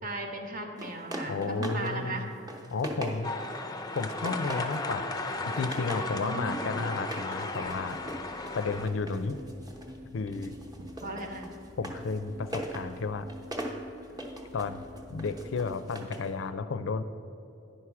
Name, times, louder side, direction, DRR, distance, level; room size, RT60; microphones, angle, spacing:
voice 1, 0.0-2.3 6.1-6.8 11.0-11.5, right 2 dB, 45° right, 3 dB, 1.1 m, -36 dB
sound 1, 0.8-1.9 2.3-3.5 4.0-4.9 5.3-6.1 7.0-10.0 10.3-16.3, right 1 dB, 20° right, 0.9 m, -41 dB
voice 2, 1.3-2.3 2.7-3.3 3.9-5.2 5.6-8.0 8.5-9.4 10.1-10.6 11.8-13.3 14.5-14.8 15.1-17.0, left 4 dB, 80° left, 12 dB, 0.5 m, -32 dB
sound 2, 3.2-8.9, left 2 dB, 20° left, 0.5 m, -35 dB
sound 3, 7.6-15.7, left 1 dB, 90° right, 1.6 m, -49 dB
10.0 x 4.8 x 5.8 m, 2.9 s
head